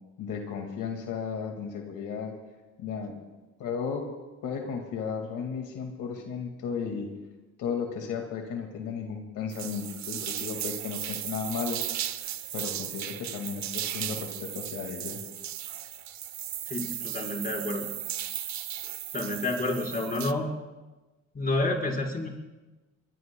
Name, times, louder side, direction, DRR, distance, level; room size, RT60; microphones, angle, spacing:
voice 1, 0.2-2.3 2.8-3.1 3.6-4.1 4.4-7.1 7.6-11.8 12.5-15.2, left 6 dB, 85° left, 3 dB, 2.0 m, -34 dB
sound 1, 9.5-20.3, right 11 dB, 65° right, 0.8 m, -36 dB
voice 2, 16.7-17.9 19.1-20.5 21.3-22.3, left 2 dB, 30° left, -2 dB, 4.5 m, -29 dB
24.0 x 23.0 x 2.2 m, 1.1 s
cardioid pair, 90°, 30 cm